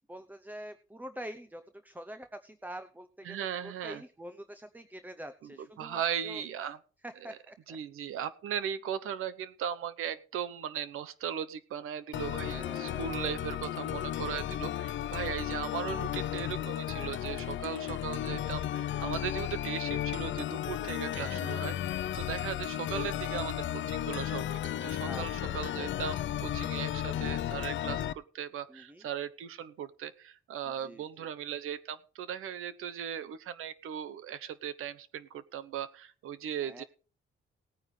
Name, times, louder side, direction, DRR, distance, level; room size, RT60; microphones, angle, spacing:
voice 1, 0.1-6.4 7.0-7.8 12.4-13.1 16.2-16.5 21.1-21.5 25.0-26.0 28.7-29.1 30.7-31.3 36.6-36.8, equal, 10° right, 10 dB, 0.8 m, -46 dB
voice 2, 3.2-4.0 5.4-5.5 5.8-6.8 7.3-7.4 7.7-21.7 22.1-36.8, right 9 dB, 90° right, 14 dB, 1.0 m, -38 dB
sound 1, 12.1-28.1, left 11 dB, 65° left, 0.6 m, -34 dB
18.5 x 9.4 x 3.3 m, 0.38 s
cardioid pair, 110°, 21 cm